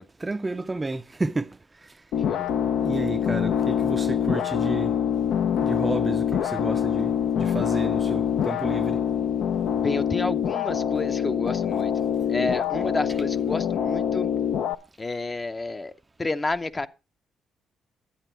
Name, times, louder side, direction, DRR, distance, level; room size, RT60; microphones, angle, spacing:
voice 1, 0.2-2.0 2.8-4.9 5.6-9.0, right 2 dB, 20° right, 0.4 m, -31 dB
sound 1, 2.1-14.7, left 8 dB, 75° left, 0.6 m, -25 dB
voice 2, 9.8-11.9 12.3-14.4 15.0-15.9 16.2-16.9, left 2 dB, 25° left, 0.6 m, -30 dB
11.0 x 8.2 x 4.4 m
cardioid pair, 90°, 0 cm